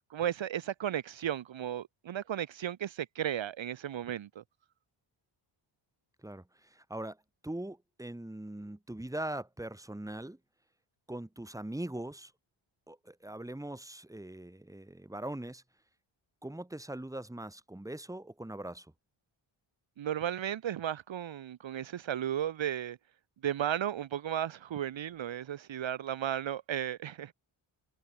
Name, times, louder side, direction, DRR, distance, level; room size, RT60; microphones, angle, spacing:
voice 1, 0.1-4.4 20.0-23.0 23.4-27.3, right 10 dB, 65° right, 1.5 m, -34 dB
voice 2, 6.2-7.2 7.4-10.4 11.1-12.3 12.9-15.6 16.4-18.9, right 1 dB, 5° right, 3.3 m, -41 dB
wide cardioid pair, 155°, 49 cm